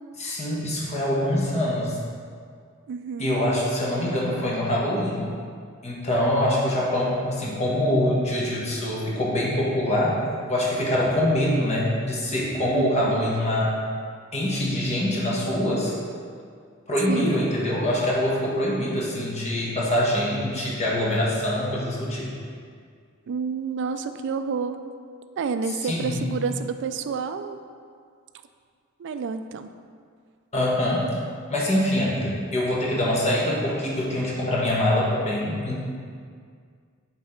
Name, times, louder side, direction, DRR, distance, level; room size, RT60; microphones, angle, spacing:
voice 1, 0.2-2.0 3.2-5.2 5.8-10.2 10.5-13.8 14.3-15.9 16.9-22.3 25.8-26.4 30.5-31.1 31.5-35.8, left 1 dB, 30° left, -4 dB, 1.2 m, -24 dB
voice 2, 2.9-3.4 12.7-13.2 17.1-17.5 23.3-24.8 25.4-27.6 29.0-29.7, right 5 dB, 55° right, 9 dB, 0.3 m, -29 dB
5.8 x 4.1 x 4.3 m, 2.1 s
head